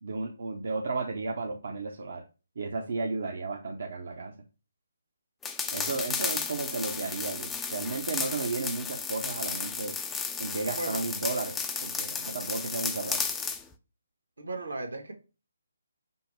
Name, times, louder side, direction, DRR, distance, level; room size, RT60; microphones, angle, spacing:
voice 1, 0.0-2.3 2.6-4.3 5.7-10.0 10.4-13.2, right 3 dB, 60° right, 1 dB, 0.7 m, -33 dB
sound 1, 5.4-13.6, left 5 dB, 10° left, 0.4 m, -33 dB
voice 2, 10.7-11.0 14.4-15.1, right 2 dB, 80° right, 4 dB, 1.3 m, -36 dB
5.4 x 2.0 x 4.4 m, 0.31 s
figure-of-eight pair, 150°, 0 cm